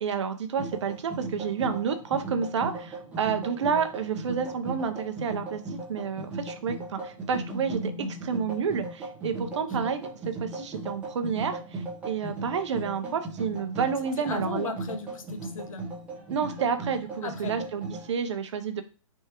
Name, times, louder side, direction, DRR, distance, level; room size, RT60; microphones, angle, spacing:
voice 1, 0.0-10.0 10.3-14.7 16.3-18.8, right 6 dB, 60° right, 8 dB, 0.7 m, -30 dB
sound 1, 0.6-18.1, right 2 dB, 10° right, 0.8 m, -37 dB
voice 2, 14.1-15.8 17.2-17.5, left 4 dB, 75° left, 7 dB, 0.9 m, -36 dB
4.5 x 3.6 x 2.9 m, 0.34 s
hypercardioid pair, 160°, 17 cm